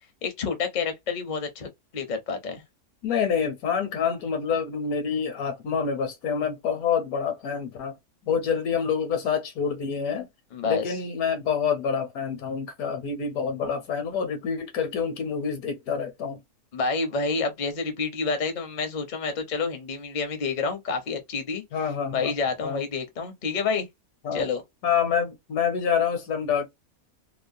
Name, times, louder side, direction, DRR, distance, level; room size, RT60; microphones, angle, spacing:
voice 1, 0.2-2.6 10.5-11.0 16.7-21.6 22.1-23.9 24.3-24.6, left 4 dB, 45° left, 0.6 m, -28 dB
voice 2, 3.0-8.0 8.3-10.3 10.6-16.4 21.7-22.3 22.6-22.8 24.2-24.4 24.8-26.7, left 6 dB, 70° left, 1.2 m, -27 dB
2.9 x 2.1 x 2.5 m
omnidirectional pair, 1.6 m